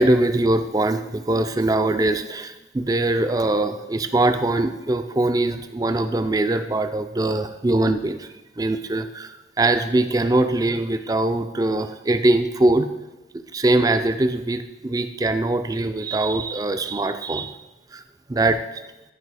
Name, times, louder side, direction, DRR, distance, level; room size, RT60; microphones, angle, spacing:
voice 1, 0.0-8.3 8.6-9.3 9.6-12.9 13.3-17.6 17.9-18.0 18.3-18.8, right 2 dB, 20° right, 9 dB, 0.4 m, -22 dB
10.5 x 4.9 x 4.8 m, 1.0 s
head